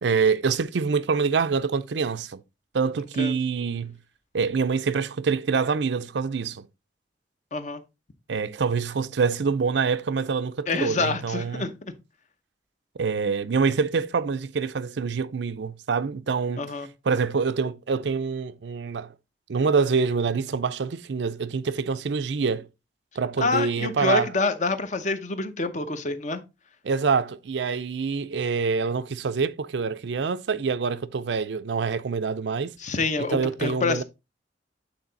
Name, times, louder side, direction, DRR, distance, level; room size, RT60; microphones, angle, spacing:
voice 1, 0.0-2.4 2.7-4.0 4.3-6.7 8.3-11.7 13.0-16.6 17.0-19.1 19.5-22.7 23.2-24.3 26.8-32.7 33.3-34.0, right 5 dB, 70° right, 0.5 m, -25 dB
voice 2, 7.5-7.8 10.7-11.7 16.6-16.9 23.4-26.4 32.8-34.0, left 3 dB, 40° left, 0.8 m, -27 dB
8.8 x 3.8 x 3.9 m
head